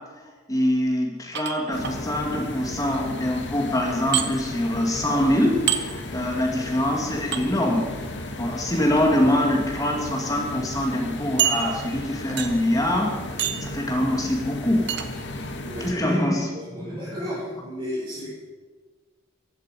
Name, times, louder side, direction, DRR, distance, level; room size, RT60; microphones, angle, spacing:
voice 1, 0.5-7.8 8.3-13.1 13.6-14.9 15.8-17.2, left 1 dB, 15° left, 0 dB, 2.2 m, -24 dB
sound 1, 1.4-2.0 4.1-4.3 5.7-5.8 7.3-7.4 8.8-9.0 9.8-9.9 10.2-10.3 11.4-12.0 12.4-12.7 13.4-13.7 14.9-15.1, right 10 dB, 55° right, 1.1 m, -26 dB
sound 2, 1.7-15.9, left 1 dB, 60° left, 1.8 m, -35 dB
voice 2, 15.7-16.2 16.5-18.4, equal, 25° right, -9 dB, 5.3 m, -33 dB
15.0 x 12.0 x 5.2 m, 1.4 s
head